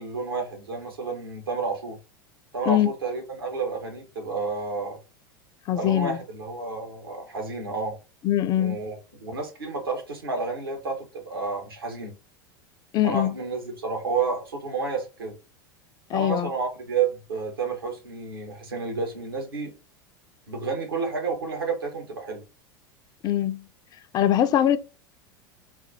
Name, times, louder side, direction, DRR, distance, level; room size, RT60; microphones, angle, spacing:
voice 1, 0.0-2.0 2.5-5.0 5.7-8.0 8.5-9.0 9.2-12.1 13.0-15.3 16.1-19.7 20.5-22.4, right 4 dB, 80° right, 1.2 m, -30 dB
voice 2, 5.7-6.2 8.2-8.8 12.9-13.3 16.1-16.5 23.2-23.6 24.1-24.8, left 11 dB, 35° left, 0.3 m, -22 dB
4.1 x 2.2 x 2.6 m
figure-of-eight pair, 85°, 12 cm